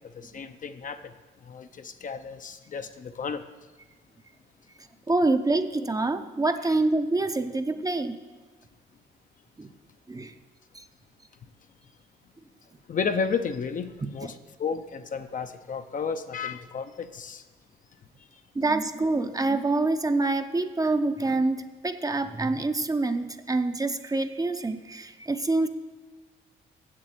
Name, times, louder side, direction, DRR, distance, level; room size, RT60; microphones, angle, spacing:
voice 1, 0.1-1.1 1.5-3.4 12.9-17.4, left 5 dB, 40° left, 9 dB, 0.6 m, -32 dB
voice 2, 5.1-8.2 9.6-9.7 10.1-10.3 10.7-10.8 14.2-14.3 18.5-25.7, right 2 dB, 20° right, 8 dB, 0.6 m, -26 dB
7.5 x 7.5 x 8.2 m, 1.3 s
cardioid pair, 90°, 20 cm